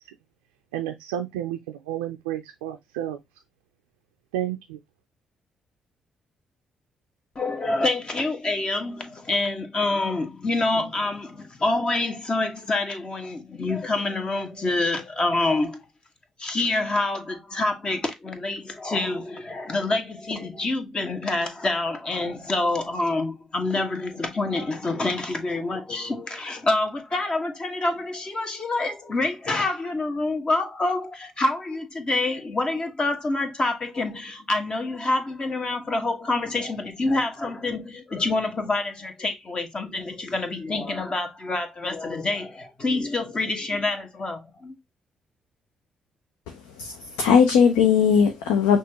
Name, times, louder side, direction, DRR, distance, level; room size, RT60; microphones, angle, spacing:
voice 1, 0.7-3.2 4.3-4.8, right 12 dB, 85° right, 0.4 m, -31 dB
voice 2, 7.3-15.8 16.4-44.8, left 2 dB, 40° left, 1.2 m, -27 dB
voice 3, 46.5-48.8, left 7 dB, 80° left, 0.5 m, -19 dB
5.9 x 2.5 x 2.9 m
hypercardioid pair, 40°, 2 cm